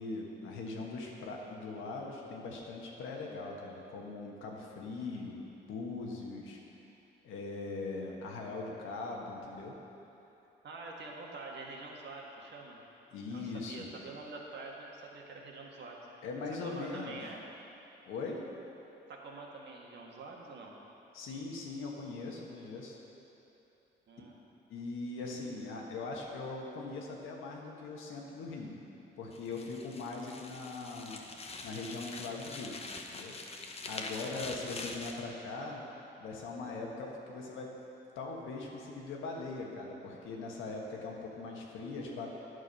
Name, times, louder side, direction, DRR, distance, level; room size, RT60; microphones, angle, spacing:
voice 1, 0.0-5.4 5.7-6.6 7.2-9.8 13.1-13.9 16.2-17.3 18.1-18.4 21.1-23.0 24.7-28.8 29.2-31.2 31.6-32.8 33.1-33.4 33.7-35.8 36.2-37.7 38.1-42.3, left 3 dB, 85° left, -1 dB, 1.4 m, -41 dB
voice 2, 10.6-12.8 13.3-16.0 16.6-17.4 19.1-20.8 24.1-24.4, right 3 dB, 60° right, -1 dB, 1.5 m, -46 dB
sound 1, 29.3-35.2, left 3 dB, 30° left, 0.8 m, -44 dB
9.7 x 6.5 x 5.4 m, 3.0 s
cardioid pair, 90°, 20 cm